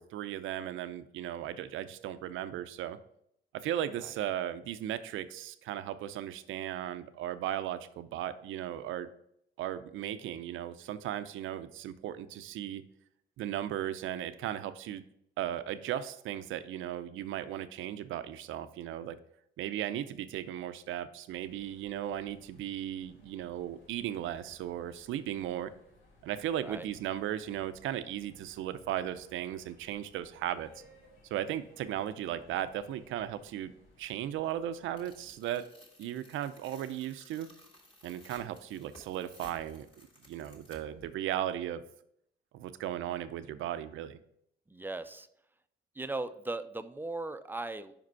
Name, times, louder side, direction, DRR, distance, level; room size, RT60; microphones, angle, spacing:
voice 1, 0.0-3.0 3.5-9.1 9.6-12.8 13.4-15.0 15.4-19.2 19.6-25.7 26.2-30.7 31.3-33.7 34.0-35.7 36.0-37.5 38.0-39.9 40.3-41.8 42.5-44.2, right 11 dB, 80° right, 13 dB, 0.5 m, -36 dB
sound 1, 21.3-35.3, left 1 dB, 80° left, 1.8 m, -62 dB
Tearing, 35.0-41.1, left 1 dB, 25° left, 1.9 m, -57 dB
voice 2, 44.7-45.3 46.0-47.9, right 2 dB, 10° right, 11 dB, 0.4 m, -38 dB
5.3 x 4.9 x 4.6 m, 0.72 s
cardioid pair, 90°, 20 cm